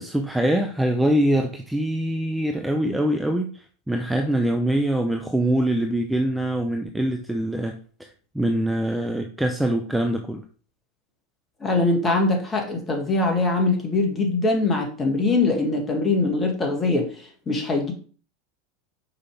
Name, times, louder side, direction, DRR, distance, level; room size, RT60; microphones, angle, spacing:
voice 1, 0.0-7.7 8.3-10.4, right 1 dB, 5° right, 4 dB, 0.7 m, -23 dB
voice 2, 11.6-17.1 17.5-17.9, left 3 dB, 20° left, 2 dB, 1.9 m, -22 dB
5.8 x 5.1 x 3.5 m, 0.40 s
figure-of-eight pair, 85°, 0 cm